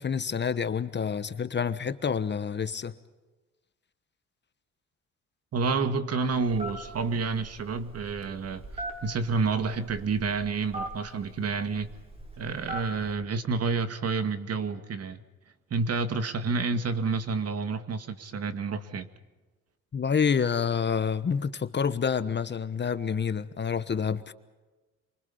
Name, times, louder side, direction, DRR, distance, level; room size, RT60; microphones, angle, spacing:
voice 1, 0.0-2.9 19.9-24.3, left 6 dB, 35° left, 12 dB, 1.3 m, -28 dB
voice 2, 5.5-11.9 12.4-15.2 15.7-19.1, right 4 dB, 55° right, 10 dB, 2.0 m, -29 dB
Telephone, 6.3-13.1, right 1 dB, 20° right, 7.3 m, -41 dB
28.0 x 24.5 x 5.6 m, 1.2 s
cardioid pair, 90°, 30 cm